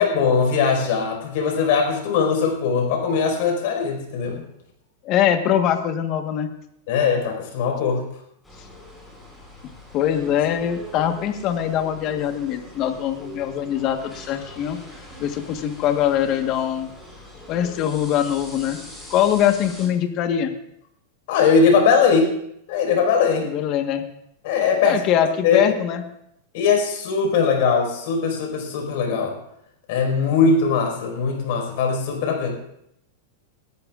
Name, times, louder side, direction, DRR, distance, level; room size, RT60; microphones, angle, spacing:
voice 1, 0.0-4.4 6.9-8.0 21.3-22.4 22.7-23.5 24.4-25.0 25.4-25.8 26.5-29.4 29.9-32.5, left 5 dB, 60° left, 3 dB, 4.9 m, -20 dB
voice 2, 5.0-6.5 9.9-14.8 15.2-16.9 17.5-18.8 19.1-20.5 23.4-24.0 24.8-26.0, left 10 dB, 40° left, 7 dB, 1.3 m, -22 dB
sound 1, 8.4-19.9, equal, 5° left, 5.4 m, -42 dB
20.5 x 13.5 x 2.5 m, 0.77 s
supercardioid pair, 140°, 0 cm